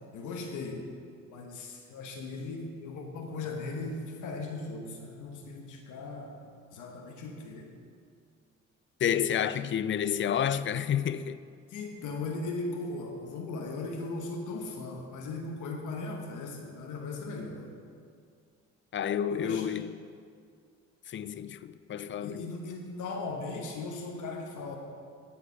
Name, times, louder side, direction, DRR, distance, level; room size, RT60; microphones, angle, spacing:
voice 1, 0.1-0.9 1.3-6.3 6.7-7.7 11.7-17.7 19.3-19.7 22.2-24.8, left 3 dB, 80° left, 1.1 m, -38 dB
voice 2, 9.0-11.4 18.9-20.1 21.1-22.5, left 9 dB, 40° left, 0.4 m, -30 dB
11.5 x 4.9 x 5.8 m
cardioid pair, 90°, 30 cm